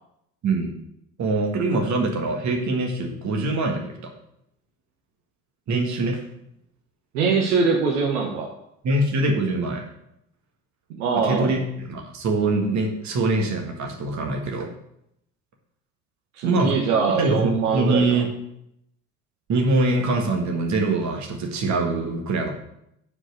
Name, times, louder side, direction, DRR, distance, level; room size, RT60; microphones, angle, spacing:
voice 1, 1.2-4.1 5.7-6.2 8.8-9.8 11.1-14.7 16.4-16.8 17.1-18.3 19.5-22.5, right 2 dB, 35° right, 2 dB, 1.7 m, -23 dB
voice 2, 7.1-8.5 10.9-11.5 16.4-18.1, right 5 dB, 65° right, 1 dB, 1.3 m, -22 dB
7.6 x 4.8 x 6.6 m, 0.77 s
figure-of-eight pair, 60°, 47 cm